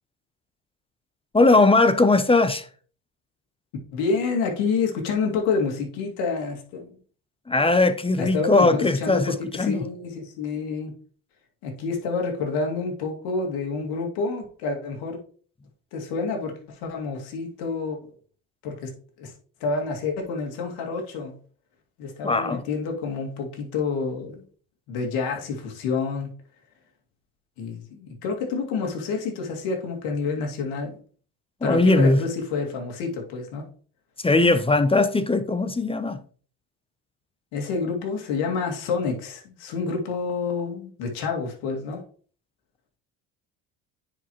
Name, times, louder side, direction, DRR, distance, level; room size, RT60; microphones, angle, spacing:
voice 1, 1.3-2.7 7.5-9.8 22.2-22.6 31.6-32.2 34.2-36.2, left 2 dB, 15° left, 0.7 m, -19 dB
voice 2, 3.9-6.9 8.2-10.9 11.6-15.2 15.9-18.0 18.6-18.9 19.2-19.3 19.6-21.3 22.0-24.4 24.9-26.3 27.6-31.0 31.6-33.6 37.5-42.0, left 4 dB, 75° left, 2.4 m, -28 dB
9.7 x 4.6 x 3.1 m
supercardioid pair, 80°, 39 cm